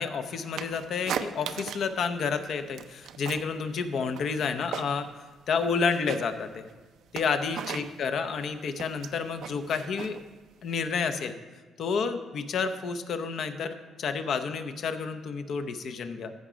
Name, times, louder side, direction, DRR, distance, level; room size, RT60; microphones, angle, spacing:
voice 1, 0.0-5.1 5.5-6.7 7.1-10.2 10.6-11.4 11.8-16.3, left 5 dB, 65° left, 9 dB, 0.7 m, -30 dB
sound 1, 0.6-2.0 2.3-3.5 3.8-5.2 5.5-10.9, right 9 dB, 80° right, 0.4 m, -38 dB
15.0 x 5.0 x 5.0 m, 1.3 s
cardioid pair, 90°, 0 cm